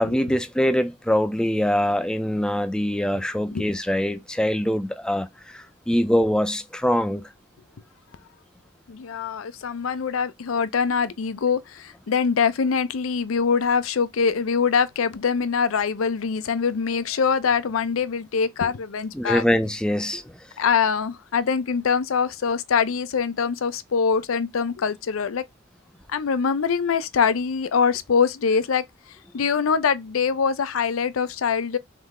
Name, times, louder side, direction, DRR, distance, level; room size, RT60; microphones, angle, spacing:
voice 1, 0.0-5.3 5.5-7.2 19.1-20.2, equal, 5° left, 0.4 m, -23 dB
voice 2, 8.9-19.4 20.6-25.4 26.1-28.8 29.3-31.8, left 6 dB, 85° left, 0.5 m, -23 dB
3.7 x 3.2 x 3.6 m
head